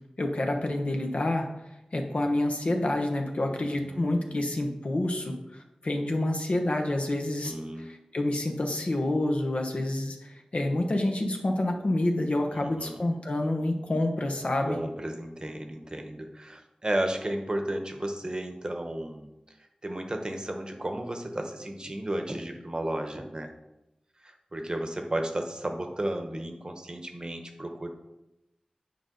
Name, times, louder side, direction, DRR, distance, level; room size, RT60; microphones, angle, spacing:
voice 1, 0.2-1.5 1.9-14.8, left 1 dB, 60° left, 3 dB, 1.1 m, -28 dB
voice 2, 3.4-4.4 7.5-7.9 12.5-13.0 14.4-19.3 19.6-23.5 24.2-27.9, right 1 dB, 35° right, 4 dB, 1.0 m, -34 dB
9.1 x 5.1 x 3.9 m, 0.92 s
wide cardioid pair, 70°, 2 cm